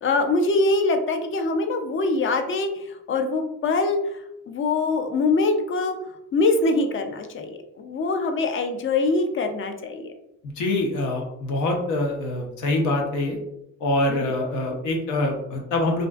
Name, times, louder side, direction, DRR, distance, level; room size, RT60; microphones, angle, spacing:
voice 1, 0.0-6.0 6.3-10.1 14.1-14.3, left 3 dB, 45° left, 6 dB, 0.4 m, -24 dB
voice 2, 10.6-13.4 13.8-16.1, left 2 dB, 85° left, 1 dB, 0.7 m, -24 dB
2.5 x 2.3 x 2.3 m, 0.82 s
cardioid pair, 90°, 30 cm